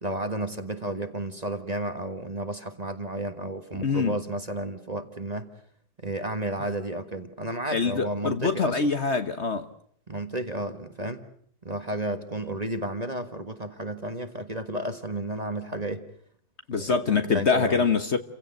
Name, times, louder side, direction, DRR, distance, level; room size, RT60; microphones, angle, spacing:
voice 1, 0.0-5.5 6.0-8.8 10.1-11.2 11.6-16.1 16.7-17.8, right 1 dB, 25° right, 1.6 m, -32 dB
voice 2, 3.8-4.2 7.7-9.7 16.7-18.2, left 5 dB, 45° left, 1.3 m, -24 dB
29.5 x 16.5 x 9.2 m
omnidirectional pair, 1.7 m